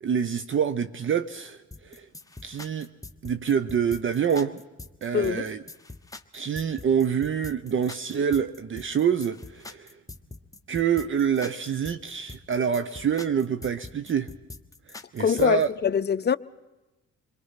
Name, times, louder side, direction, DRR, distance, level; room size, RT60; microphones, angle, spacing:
voice 1, 0.0-2.1 2.4-2.9 3.2-4.6 5.0-5.6 6.3-9.9 10.7-14.3 14.9-15.7, right 7 dB, 40° right, 0.8 m, -26 dB
sound 1, 1.7-15.7, left 2 dB, 10° left, 1.3 m, -43 dB
voice 2, 15.2-16.4, left 7 dB, 35° left, 0.7 m, -23 dB
27.5 x 22.0 x 5.8 m
cardioid pair, 90°, 30 cm